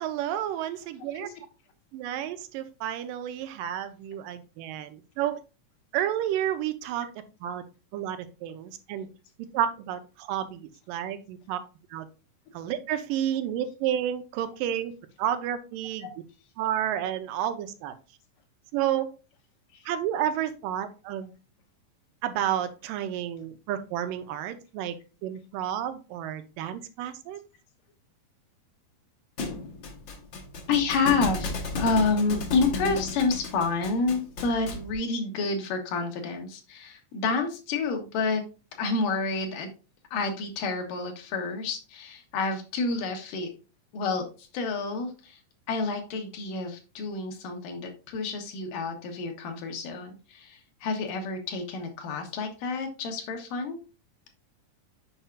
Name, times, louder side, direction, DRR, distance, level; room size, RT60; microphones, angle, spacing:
voice 1, 0.0-1.3 1.9-5.4 5.9-7.6 7.9-9.1 9.5-11.6 11.9-12.1 12.5-14.9 15.2-16.1 16.6-17.9 18.7-19.1 19.9-21.3 22.2-25.0 25.2-27.4, right 10 dB, 90° right, 10 dB, 2.3 m, -31 dB
Thump thud, 29.4-34.9, left 3 dB, 60° left, 1.2 m, -34 dB
voice 2, 30.7-38.4 38.8-39.7 40.1-43.5 43.9-45.4 45.7-53.8, left 4 dB, 75° left, 3 dB, 2.8 m, -29 dB
7.2 x 5.5 x 2.4 m, 0.32 s
omnidirectional pair, 3.9 m